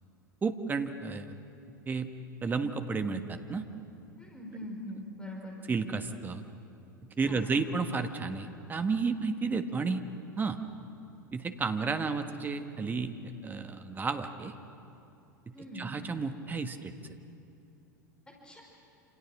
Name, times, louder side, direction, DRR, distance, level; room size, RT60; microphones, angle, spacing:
voice 1, 0.4-1.3 1.9-2.1 2.4-3.6 5.7-6.4 7.2-10.0 10.4-10.6 11.3-13.1 13.4-14.5 15.7-16.9, right 4 dB, 20° right, 7 dB, 1.5 m, -32 dB
voice 2, 4.2-5.5 7.3-7.5 15.5-15.9 18.4-18.6, equal, 10° left, -1 dB, 5.0 m, -42 dB
28.0 x 27.5 x 6.3 m, 2.7 s
figure-of-eight pair, 85°, 10 cm